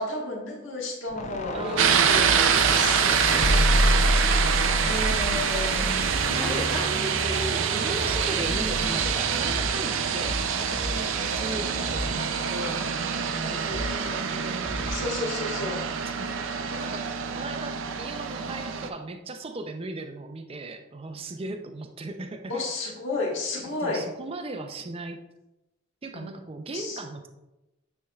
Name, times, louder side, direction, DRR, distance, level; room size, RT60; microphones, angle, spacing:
voice 1, 0.0-3.0 4.8-5.9 6.2-6.9 8.4-9.0 11.2-11.6 13.5-14.2 14.9-15.8 22.5-24.1 26.1-26.3 26.7-27.0, left 2 dB, 80° left, -1 dB, 1.5 m, -33 dB
sound 1, 1.1-6.4, left 1 dB, 35° left, 0.4 m, -27 dB
sound 2, 1.5-14.9, equal, 5° right, 0.9 m, -35 dB
voice 2, 1.5-2.1 3.3-4.2 4.7-5.0 6.1-12.9 13.2-17.1 17.3-22.9 23.8-25.2 26.0-27.3, right 2 dB, 30° right, 6 dB, 0.5 m, -38 dB
sound 3, 1.8-18.9, right 7 dB, 80° right, 0.5 m, -26 dB
9.3 x 4.4 x 2.4 m, 0.96 s
head